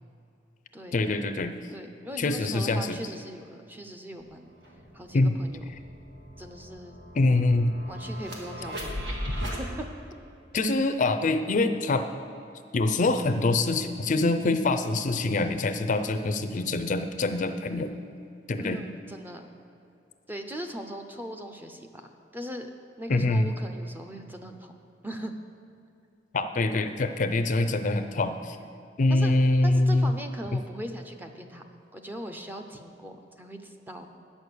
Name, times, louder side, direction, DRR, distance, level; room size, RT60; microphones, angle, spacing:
voice 1, 0.9-1.5 2.2-3.0 5.1-5.4 7.2-7.7 10.5-12.0 12.7-17.9 18.5-18.8 23.1-23.5 26.3-28.6 29.0-30.1 30.5-30.6, left 2 dB, 45° left, 8 dB, 0.5 m, -24 dB
voice 2, 1.7-4.5 4.9-5.6 6.4-7.0 7.9-9.0 9.3-9.8 18.6-19.5 20.3-22.1 22.3-22.7 23.0-24.7 25.0-25.3 29.1-29.3 29.6-31.6 31.9-34.1, equal, 10° right, 5 dB, 0.6 m, -39 dB
sound 1, 4.2-4.3 4.6-9.6, equal, 75° right, 1.7 m, -37 dB
9.0 x 6.3 x 6.8 m, 2.6 s
head